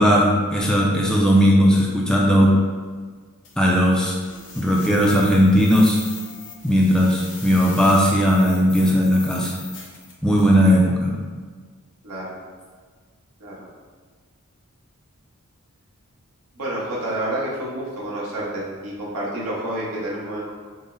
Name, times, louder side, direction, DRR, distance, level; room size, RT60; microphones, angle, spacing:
voice 1, 0.0-2.5 3.6-4.2 4.6-6.0 6.6-9.5 10.2-11.1, equal, 5° left, -3 dB, 0.3 m, -17 dB
sound 1, 3.4-10.6, left 5 dB, 60° left, 0.8 m, -40 dB
voice 2, 12.0-12.3 13.4-13.7 16.6-20.5, right 1 dB, 85° right, -6 dB, 1.1 m, -29 dB
5.2 x 2.0 x 2.6 m, 1.5 s
head